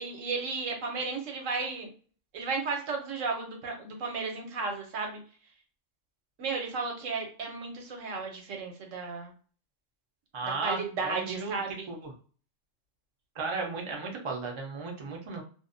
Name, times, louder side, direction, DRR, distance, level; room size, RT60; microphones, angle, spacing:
voice 1, 0.0-1.9 2.3-5.2 6.4-9.3 10.6-11.9, right 4 dB, 75° right, 2 dB, 1.1 m, -34 dB
voice 2, 10.3-11.6 11.9-12.1 13.4-15.4, right 4 dB, 40° right, 0 dB, 0.4 m, -35 dB
2.5 x 2.1 x 2.5 m, 0.41 s
omnidirectional pair, 1.3 m